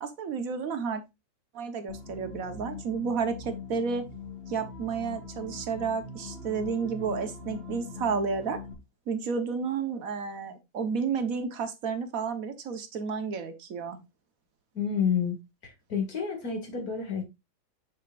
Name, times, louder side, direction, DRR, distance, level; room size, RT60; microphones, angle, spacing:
voice 1, 0.0-1.0 1.5-4.0 4.5-8.6 9.1-14.0, right 5 dB, 50° right, 1.4 m, -31 dB
sound 1, 1.9-8.7, left 4 dB, 35° left, 1.7 m, -42 dB
voice 2, 14.7-15.4 15.9-17.2, left 7 dB, 50° left, 2.6 m, -29 dB
7.1 x 6.5 x 2.5 m
omnidirectional pair, 2.1 m